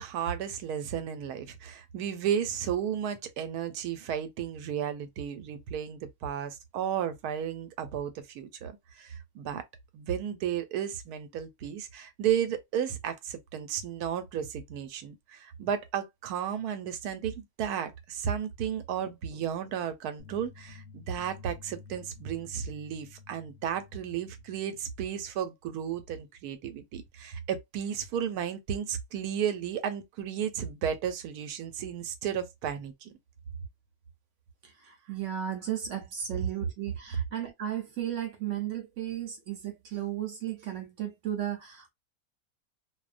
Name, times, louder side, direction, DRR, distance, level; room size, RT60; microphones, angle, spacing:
voice 1, 0.0-9.6 9.9-33.1, right 9 dB, 90° right, 1.1 m, -33 dB
sound 1, 20.2-25.2, left 5 dB, 55° left, 0.8 m, -51 dB
voice 2, 34.6-41.9, right 11 dB, 65° right, 0.9 m, -35 dB
2.5 x 2.1 x 2.4 m
omnidirectional pair, 1.6 m